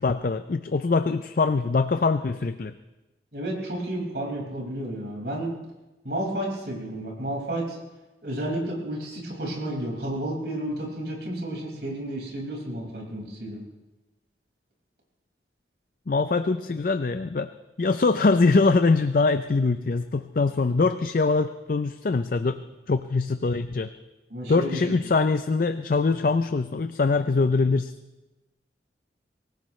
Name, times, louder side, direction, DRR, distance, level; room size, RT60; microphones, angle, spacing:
voice 1, 0.0-2.7 16.1-17.5 17.8-22.6 22.9-23.9 24.5-27.9, left 3 dB, 50° left, 10 dB, 0.5 m, -23 dB
voice 2, 3.3-5.6 6.0-7.8 8.2-13.6 24.3-24.9, right 1 dB, 70° right, -2 dB, 5.3 m, -31 dB
24.0 x 18.5 x 3.2 m, 1.1 s
head